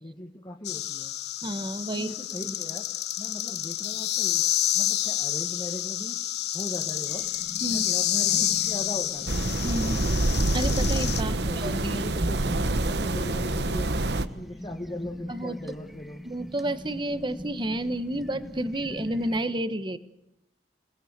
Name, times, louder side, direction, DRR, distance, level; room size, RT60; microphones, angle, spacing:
voice 1, 0.0-1.1 1.9-2.8 3.2-4.5 4.7-6.2 6.5-7.3 7.7-9.3 11.2-13.9 14.3-16.2, left 1 dB, 25° left, 1 dB, 1.9 m, -38 dB
sound 1, 0.6-11.2, left 13 dB, 65° left, 1.0 m, -29 dB
voice 2, 1.4-2.1 7.6-7.9 9.6-10.1 10.5-12.0 15.3-15.5 16.2-20.0, right 1 dB, 25° right, 12 dB, 1.4 m, -30 dB
sound 2, 7.1-19.4, equal, ahead, 1.7 m, -42 dB
sound 3, 9.3-14.3, right 2 dB, 70° right, 1.3 m, -26 dB
28.0 x 19.5 x 8.2 m, 0.82 s
head